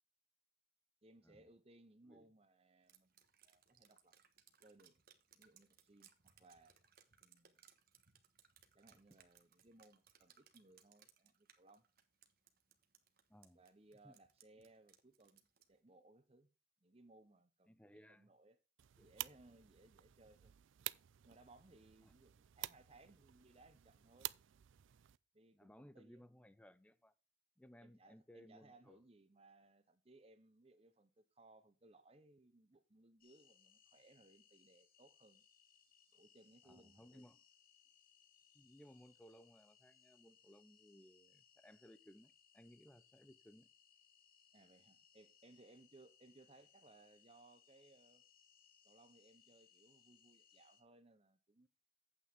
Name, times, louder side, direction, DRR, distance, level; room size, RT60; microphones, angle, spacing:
voice 1, 1.0-3.2 3.4-4.2 4.6-5.0 5.3-6.8 7.2-7.6 8.7-11.8 13.5-16.5 16.8-18.6 19.0-20.5 21.2-24.3 25.3-26.2 27.8-35.4 36.1-37.3 44.5-48.2 48.8-51.7, right 2 dB, 30° right, 0.8 m, -65 dB
Drip, 2.9-15.8, right 9 dB, 50° right, 1.3 m, -69 dB
voice 2, 13.3-13.6 14.0-14.1 17.7-18.3 19.0-19.1 22.0-22.1 25.5-27.1 27.6-29.0 36.6-37.4 38.5-43.7, equal, 5° left, 0.5 m, -62 dB
sound 1, 18.8-25.2, right 16 dB, 70° right, 0.4 m, -50 dB
sound 2, 33.2-50.8, left 8 dB, 45° left, 1.9 m, -70 dB
9.8 x 8.6 x 3.5 m
head